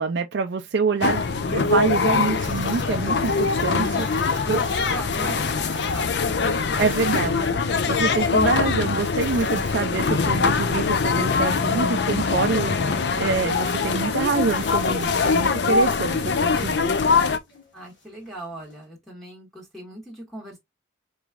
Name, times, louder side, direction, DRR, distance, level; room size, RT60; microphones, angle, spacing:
voice 1, 0.0-4.6 6.8-7.5 7.9-16.9, right 4 dB, 65° right, 0.4 m, -26 dB
sound 1, 1.0-18.8, left 3 dB, 75° left, 1.4 m, -45 dB
sound 2, 1.0-17.4, left 4 dB, 60° left, 0.5 m, -23 dB
voice 2, 4.3-6.3 17.7-20.6, right 1 dB, ahead, 1.5 m, -38 dB
4.6 x 3.1 x 2.4 m
head